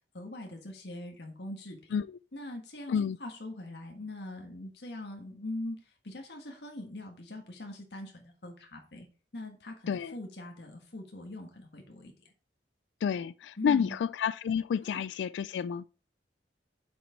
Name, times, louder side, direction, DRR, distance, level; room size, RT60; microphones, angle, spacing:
voice 1, 0.1-2.0 2.3-9.1 9.3-12.1 13.6-14.0 14.8-15.0, left 1 dB, 70° left, 1.7 m, -42 dB
voice 2, 13.0-15.8, left 7 dB, 85° left, 0.3 m, -30 dB
8.1 x 6.2 x 4.6 m
head